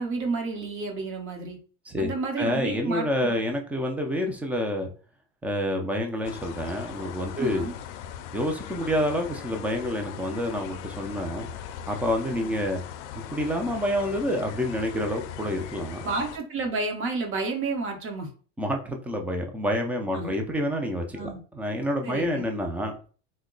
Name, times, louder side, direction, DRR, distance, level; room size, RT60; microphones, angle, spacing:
voice 1, 0.0-1.6 2.0-3.4 7.4-7.7 12.3-12.5 16.0-18.3 20.1-20.4 21.1-21.4 22.0-22.5, right 3 dB, 35° right, 3 dB, 0.9 m, -31 dB
voice 2, 2.4-4.9 5.4-7.7 8.3-11.5 11.9-12.8 13.3-16.0 18.6-22.9, equal, 5° right, 3 dB, 0.3 m, -28 dB
sound 1, 6.2-16.4, left 9 dB, 75° left, 0.5 m, -40 dB
2.8 x 2.2 x 3.8 m, 0.39 s
supercardioid pair, 125°, 36 cm